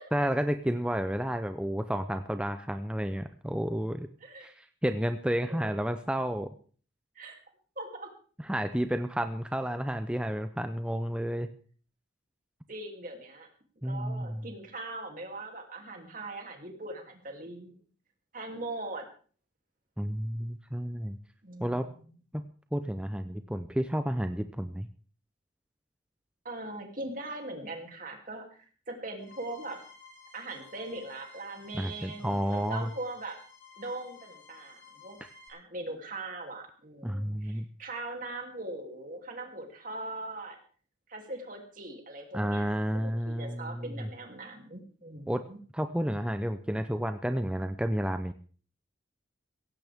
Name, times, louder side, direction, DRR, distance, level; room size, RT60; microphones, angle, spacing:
voice 1, 0.1-4.1 4.4-6.5 8.4-11.5 13.8-14.4 20.0-21.2 21.6-21.9 22.3-22.4 22.7-24.9 31.7-32.9 37.0-37.7 42.3-44.1 45.3-45.4 45.7-48.3, equal, 5° right, 8 dB, 0.6 m, -31 dB
voice 2, 5.4-5.8 7.1-7.4 7.8-8.1 12.7-13.5 13.8-17.8 18.3-19.1 21.4-22.1 26.4-29.8 30.3-33.4 33.8-35.2 35.5-40.6 41.1-45.6, right 2 dB, 40° right, 2 dB, 3.0 m, -41 dB
sound 1, 29.2-35.5, left 4 dB, 85° left, 4.8 m, -54 dB
16.5 x 15.5 x 3.6 m, 0.42 s
head